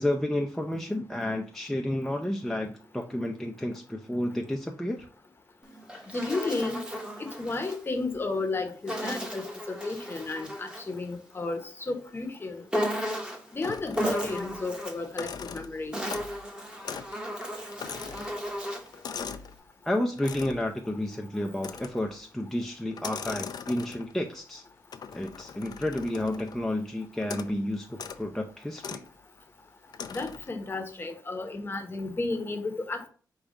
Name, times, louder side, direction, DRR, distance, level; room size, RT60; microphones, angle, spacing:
voice 1, 0.0-5.1 19.8-24.6 25.1-29.0, left 1 dB, 5° left, 2 dB, 0.4 m, -31 dB
Insect, 5.6-7.8 8.9-11.0 12.7-13.5 13.9-15.1 15.7-19.0, equal, 10° right, 1.0 m, -34 dB
voice 2, 6.1-6.9 7.2-12.6 13.5-15.9 30.1-33.1, left 3 dB, 30° left, 5 dB, 0.8 m, -33 dB
sound 1, 13.6-14.7 15.0-16.4 16.8-17.2 17.4-19.6 20.2-20.7 21.6-22.1 22.9-24.2 24.9-26.6 27.2-27.6 27.9-28.2 28.8-29.1 29.9-30.5, left 6 dB, 60° left, 0.4 m, -40 dB
5.0 x 2.3 x 3.9 m, 0.40 s
wide cardioid pair, 110°, 7 cm